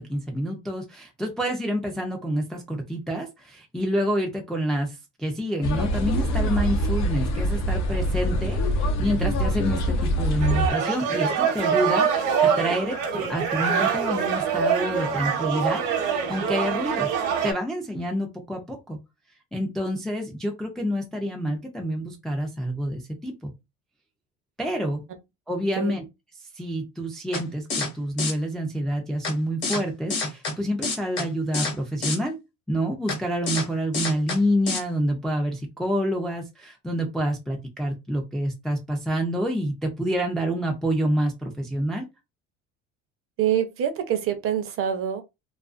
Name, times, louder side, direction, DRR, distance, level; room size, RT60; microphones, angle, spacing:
voice 1, 0.0-17.1 17.4-19.0 19.5-23.5 24.6-25.0 25.5-26.0 26.6-32.4 32.7-42.1, equal, ahead, 0.4 m, -28 dB
sound 1, 5.6-10.7, equal, 60° left, 0.7 m, -24 dB
sound 2, 10.4-17.5, right 7 dB, 70° right, 0.8 m, -24 dB
sound 3, 27.3-27.4 27.7-27.9 28.2-28.3 29.2-29.3 29.6-29.8 30.1-30.5 30.8-31.2 31.5-31.7 32.0-32.2 33.1-33.2 33.5-33.6 33.9-34.4 34.7-34.8, left 3 dB, 40° left, 1.1 m, -27 dB
voice 2, 43.4-45.2, right 9 dB, 45° right, 0.6 m, -25 dB
2.4 x 2.3 x 2.4 m
cardioid pair, 135°, 31 cm